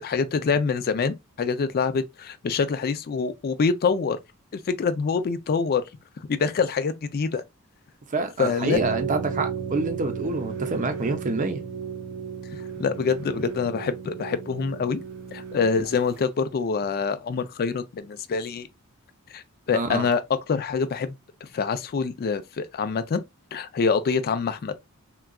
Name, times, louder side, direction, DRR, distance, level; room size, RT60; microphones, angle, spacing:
voice 1, 0.0-4.2 4.5-5.8 6.3-7.4 8.4-8.8 12.8-15.0 15.3-18.7 19.3-20.2 20.5-21.2 21.5-23.2 23.5-24.7, left 5 dB, 45° left, 0.4 m, -25 dB
voice 2, 8.1-11.6 19.7-20.1, right 3 dB, 35° right, 0.6 m, -27 dB
sound 1, 8.7-16.2, right 6 dB, 85° right, 0.8 m, -34 dB
3.8 x 2.2 x 2.2 m
head